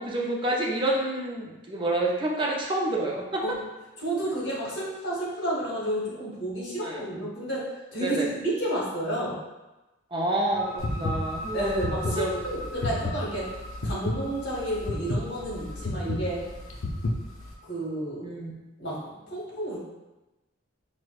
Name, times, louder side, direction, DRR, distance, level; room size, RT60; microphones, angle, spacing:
voice 1, 0.0-3.4 6.8-7.0 8.0-8.3 10.1-12.4 18.2-18.5, right 1 dB, 25° right, -2 dB, 0.4 m, -28 dB
voice 2, 4.0-9.4 11.5-13.6 13.8-16.5 17.7-18.3 18.8-19.8, right 1 dB, 50° left, -5 dB, 1.1 m, -31 dB
sound 1, 10.4-17.9, equal, 30° left, 0.6 m, -42 dB
sound 2, 10.8-17.5, left 2 dB, 75° left, 0.5 m, -31 dB
4.7 x 2.1 x 2.4 m, 1.0 s
head